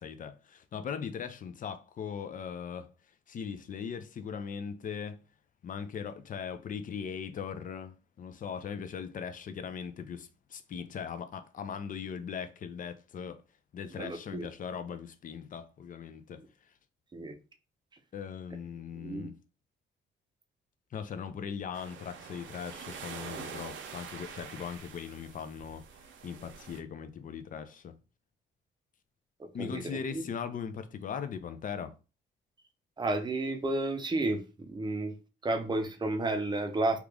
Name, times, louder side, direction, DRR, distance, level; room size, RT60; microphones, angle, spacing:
voice 1, 0.0-2.9 3.3-5.2 5.6-13.4 13.7-16.4 18.1-19.3 20.9-25.8 26.2-27.9 29.5-31.9, left 7 dB, 45° left, 0.5 m, -39 dB
voice 2, 14.0-14.5 17.1-17.4 18.9-19.3 29.4-30.2 33.0-35.2 35.4-37.0, right 2 dB, 20° right, 0.7 m, -32 dB
sound 1, 21.7-26.8, right 6 dB, 75° right, 0.6 m, -45 dB
2.9 x 2.4 x 3.4 m
cardioid pair, 90°, 20 cm